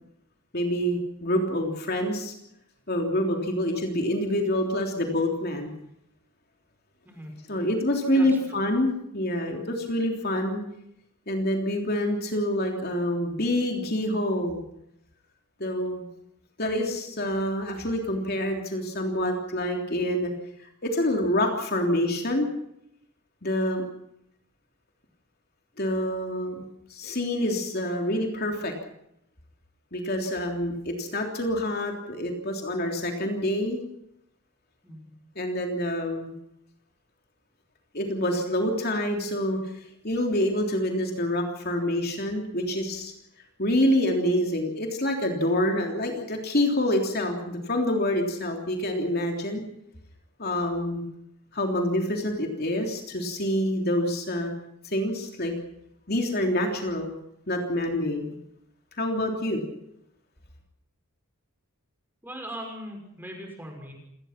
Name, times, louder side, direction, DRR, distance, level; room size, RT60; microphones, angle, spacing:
voice 1, 0.5-2.3 2.9-5.7 7.5-10.6 11.3-14.6 15.6-16.0 16.6-20.3 20.6-22.5 23.4-23.8 25.8-28.7 29.9-33.8 35.3-36.3 37.9-43.1 43.6-49.6 50.4-51.1 51.5-54.5 54.8-55.5 56.1-57.1 57.5-58.3 59.0-59.6, left 1 dB, 45° left, 2 dB, 3.4 m, -27 dB
voice 2, 7.0-7.4 8.1-8.4 34.8-35.1 62.2-63.9, equal, 10° right, 2 dB, 5.9 m, -39 dB
27.5 x 19.0 x 6.0 m, 0.78 s
head